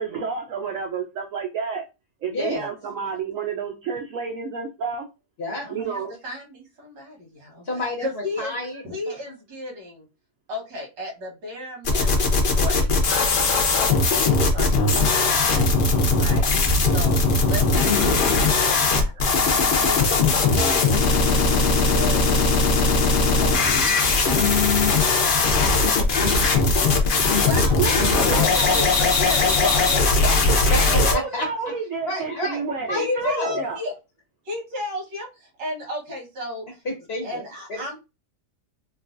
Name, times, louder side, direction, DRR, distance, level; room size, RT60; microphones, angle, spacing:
voice 1, 0.0-1.8 2.2-5.1 5.7-6.1 13.4-13.7 19.1-19.2 26.3-27.2 27.8-28.9 30.6-33.8, right 5 dB, 70° right, 0.8 m, -30 dB
voice 2, 2.3-2.7 5.4-5.7 7.6-9.3 30.7-30.8 31.1-31.5 32.1-32.6 32.9-33.6 36.8-37.4 37.7-38.0, left 2 dB, 45° left, 0.9 m, -29 dB
voice 3, 5.7-7.6 8.0-8.5 8.8-10.0 10.5-15.6 16.2-16.5 16.9-17.2 17.5-19.1 19.6-20.2 20.8-21.0 21.3-22.5 23.3-24.1 27.4-30.6 32.9-33.9 34.5-35.3 35.6-36.6 37.2-38.0, left 1 dB, 85° right, 1.9 m, -33 dB
sound 1, 11.8-31.1, left 3 dB, 70° left, 0.5 m, -19 dB
3.8 x 2.3 x 2.5 m
omnidirectional pair, 1.8 m